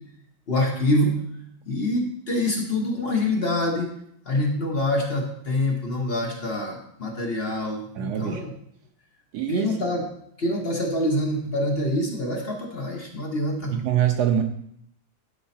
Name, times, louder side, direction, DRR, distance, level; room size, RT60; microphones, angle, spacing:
voice 1, 0.5-1.2 1.6-3.9 4.2-8.5 9.5-10.0 10.4-13.8, left 1 dB, 35° left, 0 dB, 1.2 m, -25 dB
voice 2, 8.0-8.4 9.3-9.7 13.7-14.4, right 10 dB, 65° right, 6 dB, 1.1 m, -24 dB
11.5 x 4.7 x 4.3 m, 0.71 s
omnidirectional pair, 2.0 m